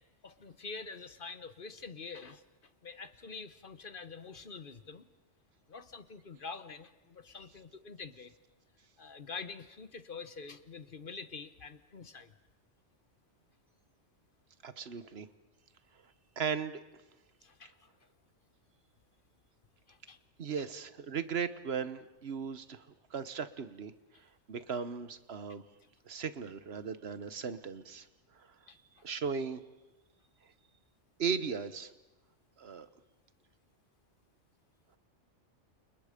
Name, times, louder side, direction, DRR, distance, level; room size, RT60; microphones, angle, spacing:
voice 1, 0.2-5.1 5.7-8.3 9.0-12.3 17.4-17.9 19.9-20.2 28.7-29.0, left 4 dB, 50° left, 11 dB, 1.3 m, -46 dB
voice 2, 14.6-15.3 16.4-16.8 20.4-23.9 24.2-25.6 26.0-28.1 28.3-28.5 29.0-29.6 31.2-31.9 32.6-32.9, right 6 dB, 60° right, 12 dB, 1.4 m, -37 dB
29.5 x 29.0 x 5.2 m, 1.0 s
omnidirectional pair, 1.2 m